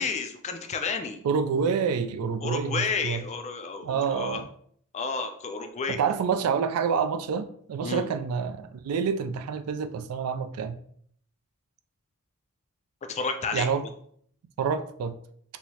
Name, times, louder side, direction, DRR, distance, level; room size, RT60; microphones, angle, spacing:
voice 1, 0.0-1.2 2.4-4.4 4.9-6.0 7.8-8.1 13.1-13.7, left 5 dB, 30° left, 7 dB, 0.3 m, -31 dB
voice 2, 1.2-3.2 3.8-4.4 5.9-10.8 13.5-13.8 14.6-15.1, right 6 dB, 80° right, 9 dB, 0.3 m, -27 dB
4.5 x 2.1 x 2.7 m, 0.63 s
head